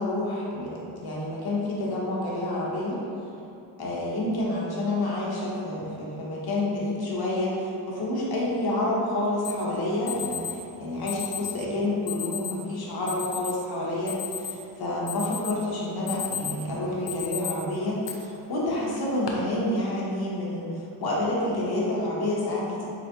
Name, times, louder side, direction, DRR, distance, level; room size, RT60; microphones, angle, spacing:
voice 1, 0.0-3.0 3.8-22.9, left 1 dB, 55° left, -5 dB, 1.1 m, -29 dB
Alarm, 9.4-9.5 10.1-10.5 11.1-11.6 12.1-12.5 13.1-13.5 13.9-14.7 15.1-15.6 15.9-16.6 17.1-17.5 18.0-18.1 18.9-19.3, left 9 dB, 75° left, 0.7 m, -33 dB
4.0 x 3.3 x 2.9 m, 2.7 s
cardioid pair, 100°, 44 cm